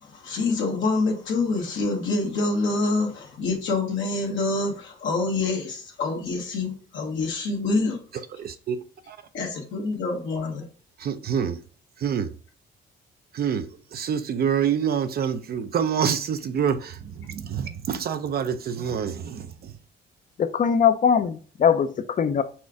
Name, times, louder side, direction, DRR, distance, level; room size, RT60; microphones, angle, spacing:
voice 1, 0.0-8.0 9.3-10.7 17.7-17.8, left 3 dB, 75° left, 1.1 m, -26 dB
voice 2, 8.3-8.8 9.1-9.2 11.0-11.6 12.0-12.3 13.3-19.8, right 8 dB, 50° right, 0.4 m, -27 dB
voice 3, 20.4-22.4, left 7 dB, 40° left, 0.5 m, -21 dB
4.3 x 2.4 x 4.7 m
cardioid pair, 90°, 20 cm